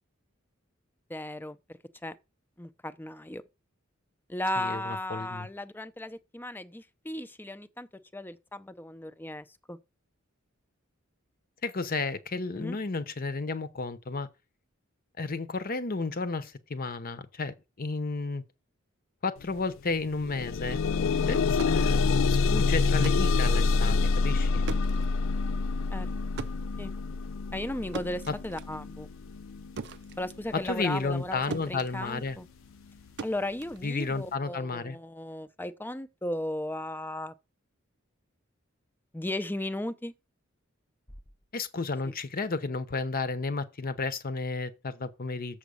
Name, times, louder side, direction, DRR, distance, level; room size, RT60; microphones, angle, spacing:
voice 1, 1.1-1.6 2.0-2.2 2.6-3.4 4.3-9.8 12.6-12.8 21.2-21.4 25.9-26.1 26.8-26.9 27.5-29.1 30.2-32.5 33.2-37.3 39.1-40.1 42.0-42.1, left 1 dB, 10° left, 0.6 m, -36 dB
voice 2, 4.6-5.5 11.6-14.3 15.2-18.4 19.2-20.8 21.3-21.4 21.7-22.0 22.3-24.6 30.6-32.4 33.8-35.0 41.5-45.6, left 3 dB, 45° left, 0.8 m, -32 dB
sound 1, 19.4-19.6 19.9-30.9 31.7-31.8 32.3-32.4, left 4 dB, 70° left, 0.4 m, -27 dB
sound 2, 21.4-31.3 31.5-34.5, right 5 dB, 60° right, 0.5 m, -43 dB
7.2 x 5.0 x 7.0 m
head